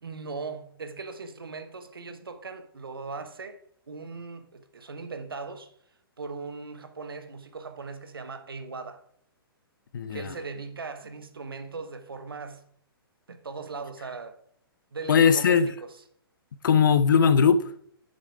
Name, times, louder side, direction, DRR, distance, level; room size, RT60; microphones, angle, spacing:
voice 1, 0.0-3.6 3.9-5.7 6.2-9.0 10.1-12.7 13.3-14.4 14.9-15.9, right 4 dB, 65° right, 1.1 m, -39 dB
voice 2, 9.9-10.3 15.1-15.7 16.6-17.7, left 6 dB, 55° left, 0.6 m, -20 dB
8.1 x 6.7 x 4.9 m
figure-of-eight pair, 115°, 13 cm